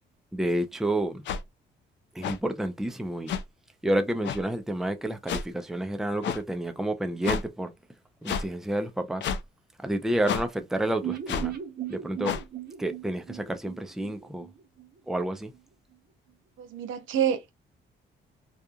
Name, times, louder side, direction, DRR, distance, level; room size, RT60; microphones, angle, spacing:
voice 1, 0.3-1.2 2.2-3.3 3.8-7.7 8.2-9.2 9.8-11.5 11.9-12.3 12.8-14.5 15.1-15.5, right 1 dB, ahead, 0.5 m, -29 dB
sound 1, 1.2-1.4 2.2-2.4 3.3-3.4 4.2-4.4 5.3-5.4 6.2-6.4 7.2-7.4 8.2-8.5 9.2-9.4 10.2-10.4 11.3-11.5 12.2-12.4, left 7 dB, 65° left, 0.5 m, -30 dB
sound 2, 11.0-14.9 15.2-15.3 15.5-15.6, right 11 dB, 50° right, 0.8 m, -37 dB
voice 2, 16.6-17.5, right 9 dB, 80° right, 0.6 m, -27 dB
2.8 x 2.4 x 2.3 m
cardioid pair, 90°, 20 cm